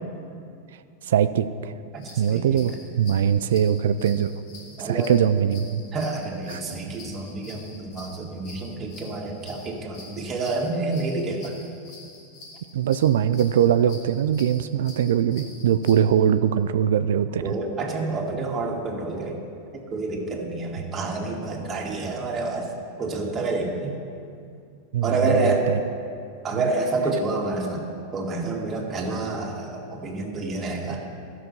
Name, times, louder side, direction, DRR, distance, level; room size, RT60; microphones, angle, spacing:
voice 1, 1.0-1.7 2.2-4.3 4.8-5.8 6.5-6.6 12.7-17.6 24.9-25.8, right 9 dB, 75° right, 12 dB, 0.3 m, -22 dB
voice 2, 1.9-2.6 4.8-5.1 5.9-11.6 17.4-19.4 19.7-22.7 23.0-24.0 25.0-25.7 26.4-27.8 28.1-31.0, right 3 dB, 25° right, -1 dB, 1.9 m, -28 dB
sound 1, 2.0-16.0, left 3 dB, 60° left, 3.0 m, -47 dB
13.0 x 6.2 x 5.4 m, 2.4 s
hypercardioid pair, 105°, 0 cm